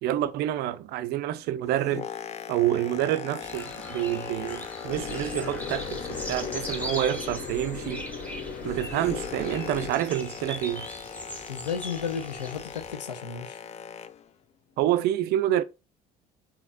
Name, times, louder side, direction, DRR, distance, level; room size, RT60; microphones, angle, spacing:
voice 1, 0.0-2.1 2.5-8.1 8.6-10.9 14.8-15.6, right 13 dB, 50° right, 0.5 m, -28 dB
Boat Water vehicle, 1.5-7.6 7.9-14.3 15.0-15.1, left 9 dB, 30° left, 0.4 m, -40 dB
sound 1, 3.4-13.0, equal, 5° left, 1.0 m, -40 dB
sound 2, 4.9-9.9, left 4 dB, 50° left, 1.0 m, -37 dB
voice 2, 11.5-13.6, left 6 dB, 85° left, 0.6 m, -33 dB
4.3 x 3.9 x 2.5 m
figure-of-eight pair, 60°, 21 cm